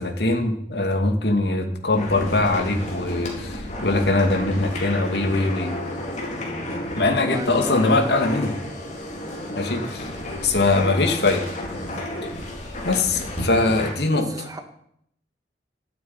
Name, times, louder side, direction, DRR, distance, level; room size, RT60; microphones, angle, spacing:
voice 1, 0.0-5.7 7.0-8.6 9.5-10.1 10.4-11.5 12.8-14.5, left 2 dB, 65° left, 5 dB, 2.4 m, -22 dB
sound 1, 1.9-13.9, left 1 dB, 40° left, 4.2 m, -32 dB
voice 2, 7.3-7.8 10.5-10.6 14.1-14.6, right 1 dB, 20° right, 5 dB, 1.9 m, -34 dB
13.0 x 8.7 x 9.7 m, 0.72 s
head